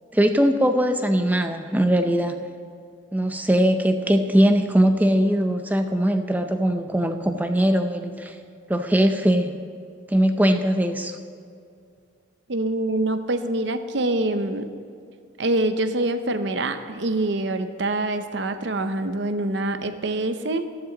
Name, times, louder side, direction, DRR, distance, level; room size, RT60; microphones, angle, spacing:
voice 1, 0.1-2.4 3.1-8.3 8.7-9.6 10.1-11.2, equal, 10° right, 6 dB, 0.6 m, -20 dB
voice 2, 12.5-14.7 15.4-20.7, right 2 dB, 60° right, 9 dB, 0.7 m, -25 dB
14.5 x 13.0 x 3.9 m, 2.4 s
head